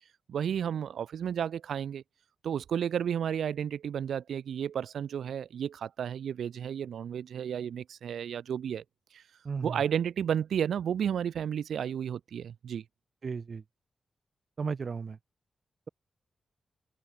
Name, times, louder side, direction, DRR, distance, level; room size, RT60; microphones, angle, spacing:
voice 1, 0.3-2.0 2.4-8.8 9.1-9.2 9.6-12.8, right 8 dB, 90° right, 3.7 m, -32 dB
voice 2, 9.4-9.8 13.2-13.6 14.6-15.2, right 5 dB, 40° right, 2.6 m, -34 dB
wide cardioid pair, 180°, 0 cm